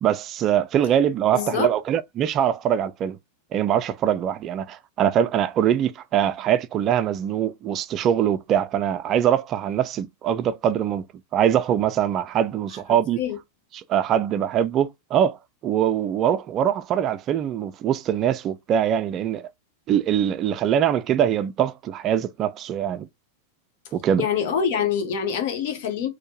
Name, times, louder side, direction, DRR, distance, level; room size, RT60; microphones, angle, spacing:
voice 1, 0.0-3.2 3.5-11.0 11.3-13.2 13.7-19.5 19.9-23.1 23.9-24.3, right 9 dB, 30° right, 0.3 m, -23 dB
voice 2, 1.3-1.7 13.2-13.4 24.2-26.1, left 7 dB, 50° left, 0.9 m, -25 dB
4.3 x 2.1 x 2.8 m
figure-of-eight pair, 90°, 0 cm